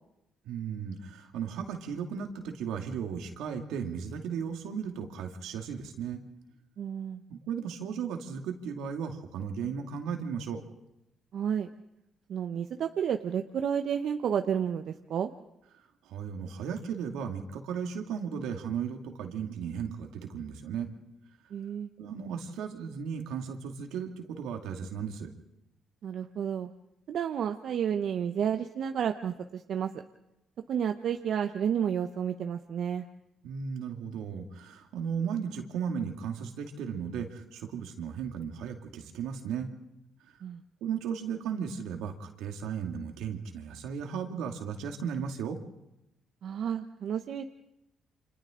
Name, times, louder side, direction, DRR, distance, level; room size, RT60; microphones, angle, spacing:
voice 1, 0.4-6.2 7.3-10.6 15.8-20.9 22.0-25.3 33.4-39.7 40.8-45.6, right 7 dB, 85° right, 3 dB, 2.3 m, -35 dB
voice 2, 6.8-7.2 11.3-11.7 12.3-15.3 21.5-21.9 26.0-26.7 27.1-29.9 30.7-33.0 40.4-40.6 46.4-47.4, right 8 dB, 65° right, 6 dB, 0.9 m, -31 dB
29.5 x 26.0 x 3.8 m, 0.88 s
cardioid pair, 80°, 0 cm